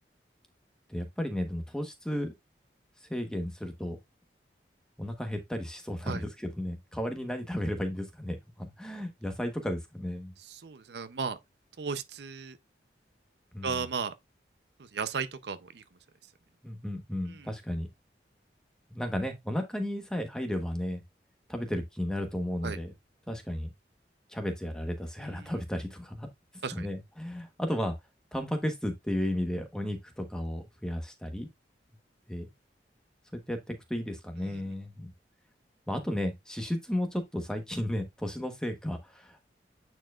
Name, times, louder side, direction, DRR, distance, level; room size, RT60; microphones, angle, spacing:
voice 1, 0.9-2.3 3.1-4.0 5.0-10.3 13.5-13.8 16.6-17.9 18.9-21.0 21.5-22.9 23.3-23.7 24.3-26.3 26.7-27.9 28.3-31.5 32.3-32.5 33.3-35.1 35.9-39.4, left 1 dB, 5° left, 1.0 m, -34 dB
voice 2, 10.4-11.4 11.8-12.6 13.6-14.1 14.8-15.8 17.3-17.5 22.6-22.8 25.2-25.5 26.6-26.9 34.5-34.6, right 5 dB, 70° right, 0.6 m, -35 dB
9.0 x 4.5 x 2.3 m
head